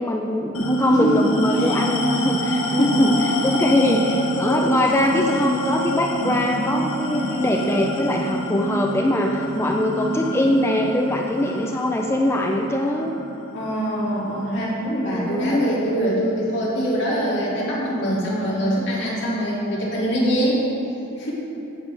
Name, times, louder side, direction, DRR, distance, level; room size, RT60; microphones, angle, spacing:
voice 1, 0.0-13.1 15.1-15.7, left 1 dB, 10° left, 1 dB, 0.4 m, -22 dB
sound 1, 0.5-15.4, equal, 75° left, 1.1 m, -26 dB
voice 2, 0.8-1.3 1.6-1.8 2.5-3.1 13.5-20.6 21.2-21.3, equal, 55° left, -7 dB, 2.5 m, -23 dB
16.5 x 7.2 x 3.4 m, 2.9 s
head